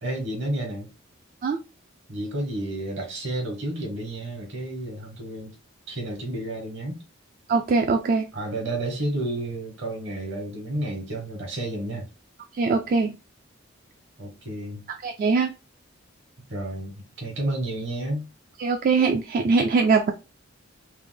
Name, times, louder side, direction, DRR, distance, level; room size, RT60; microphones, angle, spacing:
voice 1, 0.0-0.9 2.1-5.6 5.9-7.0 8.3-12.1 14.2-14.9 16.5-18.3, right 1 dB, 60° right, 1.3 m, -31 dB
voice 2, 7.5-8.3 12.5-13.1 15.0-15.5 18.6-20.1, right 4 dB, 45° right, 0.3 m, -22 dB
3.3 x 2.1 x 3.3 m
head